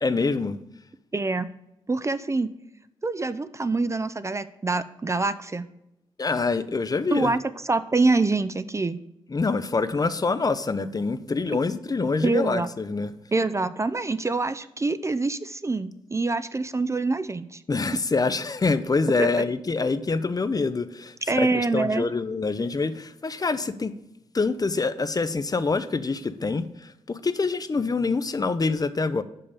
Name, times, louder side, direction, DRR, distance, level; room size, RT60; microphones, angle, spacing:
voice 1, 0.0-0.6 6.2-7.3 9.3-13.1 17.7-23.9 24.3-29.2, left 4 dB, 35° left, 0.6 m, -26 dB
voice 2, 1.1-1.5 1.9-2.5 3.0-5.7 7.1-9.0 12.2-12.7 13.3-17.6 19.2-19.3 21.3-22.1, right 3 dB, 25° right, 0.4 m, -25 dB
5.6 x 5.2 x 6.7 m
supercardioid pair, 45°, 11 cm